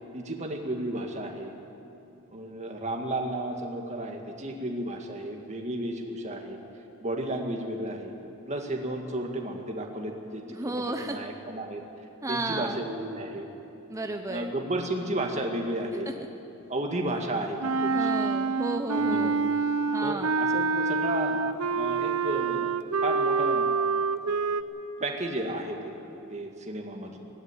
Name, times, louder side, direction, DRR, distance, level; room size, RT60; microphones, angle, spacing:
voice 1, 0.1-1.5 2.3-6.6 7.0-8.1 8.5-11.8 12.3-13.5 14.3-16.1 16.7-18.2 18.9-19.5 20.0-21.4 21.7-22.7 23.0-23.7 24.3-24.4 25.0-25.9 26.3-27.2, right 1 dB, 30° right, 2 dB, 1.9 m, -33 dB
voice 2, 10.5-11.2 12.2-12.8 13.9-14.5 16.1-16.2 17.9-19.3 19.9-20.3, right 2 dB, 15° right, 4 dB, 0.7 m, -33 dB
Wind instrument woodwind instrument, 17.6-24.6, right 4 dB, 80° right, 0.8 m, -26 dB
17.0 x 16.0 x 9.8 m, 2.8 s
head